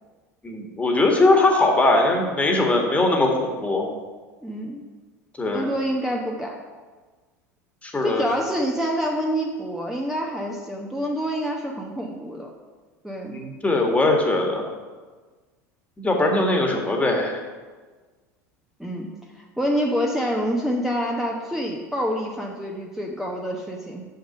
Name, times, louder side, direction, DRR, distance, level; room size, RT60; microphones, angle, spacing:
voice 1, 0.4-3.9 5.4-5.7 7.8-8.3 13.3-14.6 16.0-17.4, left 2 dB, 15° left, 1 dB, 1.8 m, -20 dB
voice 2, 4.4-4.8 5.5-6.5 8.0-12.5 13.0-13.4 18.8-19.1 19.3-24.1, equal, 5° right, -1 dB, 1.0 m, -27 dB
6.6 x 6.5 x 7.2 m, 1.4 s
figure-of-eight pair, 75°, 9 cm